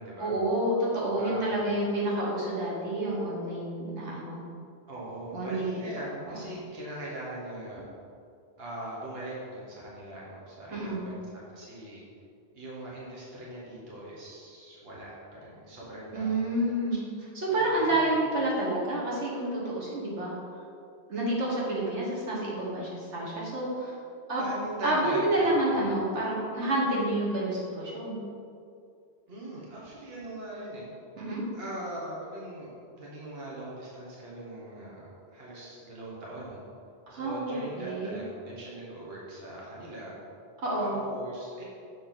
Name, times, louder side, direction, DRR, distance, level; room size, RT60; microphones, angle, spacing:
voice 1, 0.2-4.4 5.3-5.7 6.3-6.4 10.7-11.1 16.1-17.0 17.4-20.3 21.1-24.0 24.3-24.4 24.8-28.2 31.2-31.4 37.1-38.2 40.6-41.0, right 1 dB, 85° right, -5 dB, 1.7 m, -29 dB
voice 2, 1.2-1.7 4.9-7.8 8.6-11.2 11.5-12.0 12.5-16.4 17.5-18.1 24.4-26.0 29.3-30.9 31.5-32.7 33.0-36.6 37.1-40.1 40.8-41.6, right 1 dB, 60° right, -5 dB, 1.5 m, -40 dB
6.7 x 5.4 x 4.0 m, 2.4 s
omnidirectional pair, 1.1 m